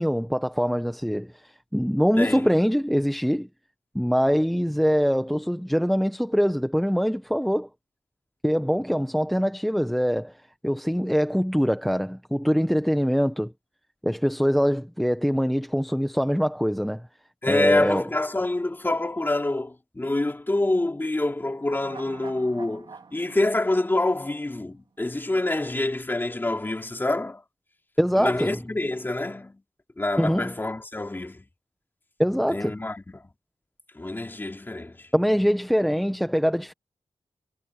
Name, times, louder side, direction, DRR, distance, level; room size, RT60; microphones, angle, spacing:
voice 1, 0.0-3.5 3.9-7.7 8.4-10.3 10.6-13.5 14.0-17.0 17.4-18.0 28.0-28.6 30.2-30.5 32.2-32.8 35.1-36.7, equal, ahead, 1.0 m, -23 dB
voice 2, 2.2-2.5 17.4-27.4 28.1-29.6 30.0-31.4 32.5-33.2 33.9-35.1, left 2 dB, 20° left, 2.9 m, -26 dB
sound 1, 21.6-25.0 25.3-25.4, right 4 dB, 50° right, 3.7 m, -47 dB
wide cardioid pair, 100°, 10 cm